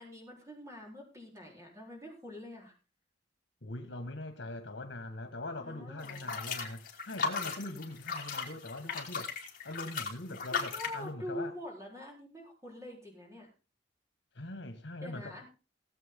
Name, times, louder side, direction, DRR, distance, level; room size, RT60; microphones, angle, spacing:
voice 1, 0.0-2.7 5.6-6.4 10.5-13.5 15.0-15.5, left 1 dB, 15° right, 4.2 m, -45 dB
voice 2, 3.6-9.3 9.6-11.5 14.3-15.5, left 2 dB, 80° left, 1.8 m, -42 dB
sound 1, 6.0-11.0, left 5 dB, 50° left, 3.2 m, -37 dB
18.5 x 8.0 x 3.8 m
head